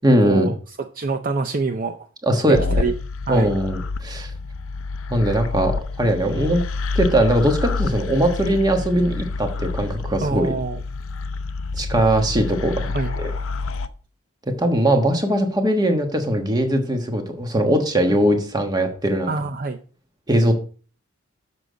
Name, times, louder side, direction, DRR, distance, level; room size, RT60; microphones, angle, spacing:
voice 1, 0.0-0.5 2.2-2.8 3.3-4.3 5.1-6.6 6.9-10.5 11.8-13.3 14.6-19.3 20.3-20.5, right 1 dB, 20° right, 4 dB, 1.2 m, -20 dB
voice 2, 0.9-2.1 2.5-2.9 3.3-3.5 10.2-10.8 12.9-13.1 19.3-19.8, right 4 dB, 40° right, 7 dB, 0.5 m, -25 dB
sound 1, 2.5-13.9, left 3 dB, 65° left, 0.6 m, -28 dB
7.4 x 6.4 x 5.0 m, 0.40 s
head